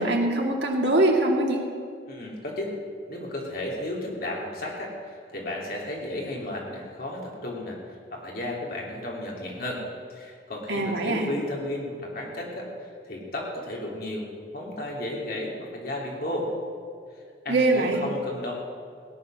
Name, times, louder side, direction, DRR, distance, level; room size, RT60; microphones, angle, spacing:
voice 1, 0.0-1.6 10.7-11.3 17.5-18.0, right 2 dB, 80° right, 0 dB, 2.4 m, -23 dB
voice 2, 2.1-2.7 3.1-9.8 10.1-14.3 14.5-16.5 17.4-18.5, left 1 dB, 55° left, -2 dB, 3.0 m, -33 dB
17.0 x 10.0 x 6.4 m, 2.2 s
head